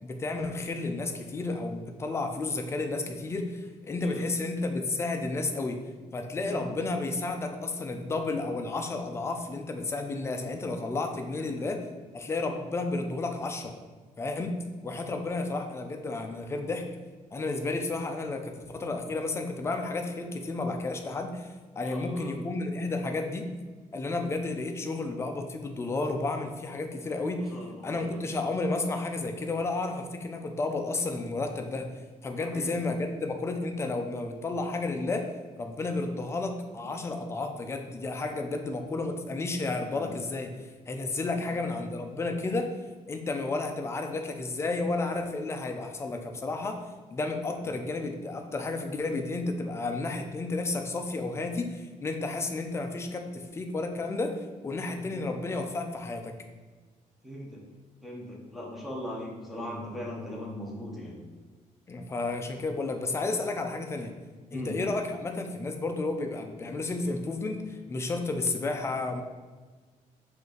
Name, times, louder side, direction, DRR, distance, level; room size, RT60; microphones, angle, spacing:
voice 1, 0.0-5.8 6.1-11.8 12.1-13.7 14.2-14.5 14.8-16.8 17.3-23.5 23.9-27.5 27.8-31.9 32.2-35.3 35.6-40.5 40.9-42.7 43.1-46.8 47.1-56.3 61.9-64.1 64.5-69.2, left 3 dB, 20° left, 5 dB, 0.4 m, -32 dB
voice 2, 11.3-11.7 21.8-22.3 27.5-28.2 32.4-32.8 39.8-40.1 41.3-41.5 54.9-55.3 57.2-57.6 58.0-61.2 64.5-64.7, left 1 dB, ahead, -3 dB, 0.8 m, -40 dB
5.2 x 2.5 x 3.8 m, 1.4 s
cardioid pair, 170°, 14 cm